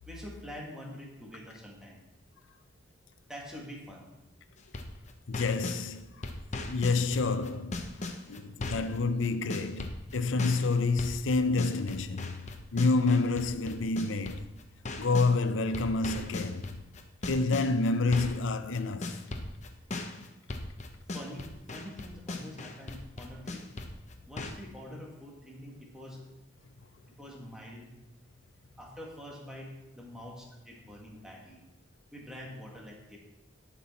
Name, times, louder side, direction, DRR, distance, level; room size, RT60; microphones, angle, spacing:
voice 1, 0.1-2.0 3.3-4.1 21.1-23.7 24.3-26.2 27.2-27.9 28.8-31.6 32.1-33.2, equal, 5° right, 1.7 m, -45 dB
sound 1, 4.6-5.8 6.2-9.0 9.2-15.3 15.7-24.5, left 2 dB, 40° left, 0.8 m, -38 dB
voice 2, 5.3-6.1 6.7-7.8 8.3-12.4 12.7-14.5 15.0-16.8 17.3-19.2, left 3 dB, 90° left, 0.5 m, -28 dB
10.5 x 6.0 x 4.2 m
head